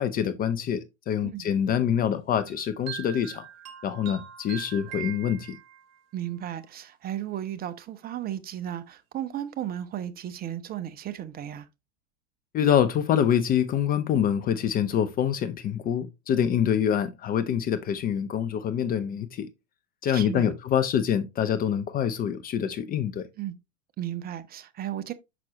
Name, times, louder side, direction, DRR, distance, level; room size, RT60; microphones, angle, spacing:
voice 1, 0.0-3.5 3.8-5.6 12.5-19.5 20.0-23.3, left 9 dB, 25° left, 0.5 m, -25 dB
sound 1, 2.5-6.0, right 11 dB, 40° right, 1.9 m, -41 dB
voice 2, 6.1-11.7 20.0-20.5 23.4-23.6 24.0-25.1, right 11 dB, 25° right, 0.7 m, -34 dB
6.0 x 5.9 x 2.8 m
hypercardioid pair, 100°, 39 cm